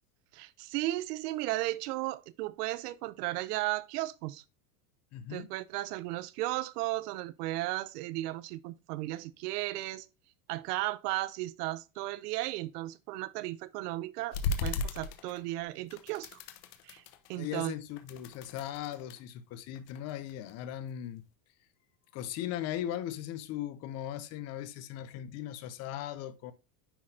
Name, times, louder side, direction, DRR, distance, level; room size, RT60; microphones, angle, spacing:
voice 1, 0.3-4.4 5.3-10.1 10.5-16.4 16.8-17.0 17.3-17.7, right 17 dB, 70° right, 0.7 m, -35 dB
voice 2, 5.1-5.5 17.4-21.2 22.1-26.5, left 11 dB, 35° left, 0.5 m, -38 dB
sound 1, 14.3-15.6 15.9-17.5 17.9-19.2 19.8-20.9, left 4 dB, 70° left, 1.1 m, -37 dB
9.9 x 3.9 x 2.7 m
supercardioid pair, 150°, 49 cm